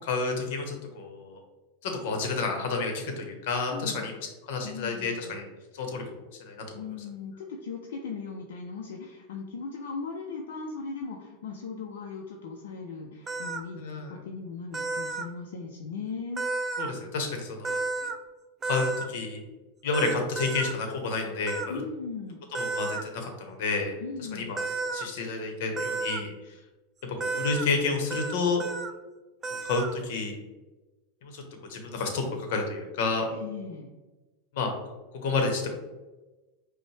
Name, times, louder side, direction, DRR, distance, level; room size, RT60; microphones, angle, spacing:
voice 1, 0.0-1.4 1.8-4.1 4.5-5.4 5.7-6.6 13.8-14.1 16.8-17.8 18.6-19.4 19.8-21.8 22.5-23.9 24.3-24.6 24.9-26.3 27.2-28.6 29.6-30.4 31.2-31.4 31.7-33.3 34.5-34.7 35.2-35.7, left 4 dB, 65° left, 3 dB, 0.9 m, -30 dB
voice 2, 3.7-4.1 4.6-5.4 6.7-16.4 21.7-22.4 24.0-24.6 33.3-33.9, left 4 dB, 85° left, 1 dB, 0.4 m, -38 dB
sound 1, 13.3-13.6 14.7-15.3 16.4-16.9 17.6-18.2 18.6-19.1 19.9-20.7 21.5-21.7 22.5-23.0 24.6-25.1 25.8-26.2 27.2-27.7 28.1-28.3 28.6-28.9 29.4-29.9, right 3 dB, 25° right, 0.4 m, -32 dB
5.2 x 2.1 x 3.2 m, 1.1 s
supercardioid pair, 125°, 0 cm